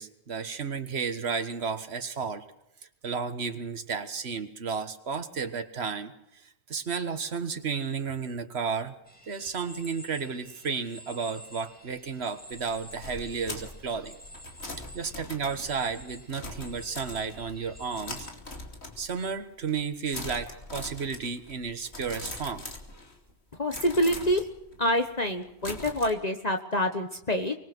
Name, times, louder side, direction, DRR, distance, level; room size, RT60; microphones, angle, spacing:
voice 1, 0.0-2.4 3.0-8.9 9.3-14.2 14.9-18.3 19.0-22.7, right 5 dB, 70° right, 8 dB, 1.7 m, -33 dB
sound 1, 9.1-18.3, equal, 10° left, 2.5 m, -49 dB
sound 2, 12.5-17.6 18.0-19.3 19.6-19.9 20.1-23.3 23.7-26.1, left 2 dB, 75° left, 3.1 m, -42 dB
voice 2, 23.5-24.5 24.8-27.5, equal, 40° left, 5 dB, 1.4 m, -26 dB
24.5 x 21.0 x 6.2 m, 0.79 s
omnidirectional pair, 1.1 m